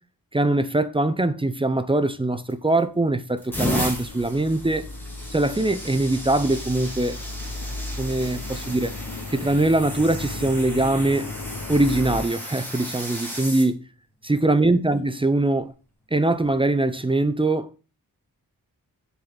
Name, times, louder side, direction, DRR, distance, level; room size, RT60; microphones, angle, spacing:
voice 1, 0.3-4.8 5.3-7.2 8.0-8.9 9.3-11.3 11.7-13.8 14.2-15.7 16.1-17.7, right 2 dB, 15° right, 0.7 m, -22 dB
sound 1, 2.5-2.9 3.4-13.7 14.5-14.8 16.3-16.5, equal, 5° left, 3.5 m, -34 dB
sound 2, 3.5-12.2, left 2 dB, 60° left, 1.5 m, -36 dB
10.0 x 7.0 x 4.0 m
wide cardioid pair, 145°, 35 cm